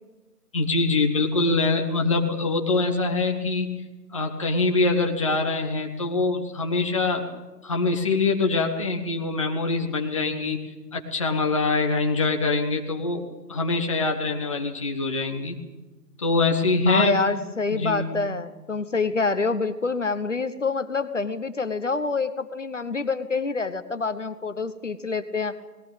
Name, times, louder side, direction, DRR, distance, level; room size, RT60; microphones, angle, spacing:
voice 1, 0.5-3.8 4.1-7.3 7.6-13.2 13.5-15.6 16.2-17.2 17.7-18.1, left 3 dB, 20° left, 2 dB, 1.2 m, -24 dB
voice 2, 16.9-25.6, left 4 dB, 45° left, 11 dB, 1.2 m, -26 dB
19.5 x 18.0 x 8.8 m, 1.2 s
figure-of-eight pair, 150°, 49 cm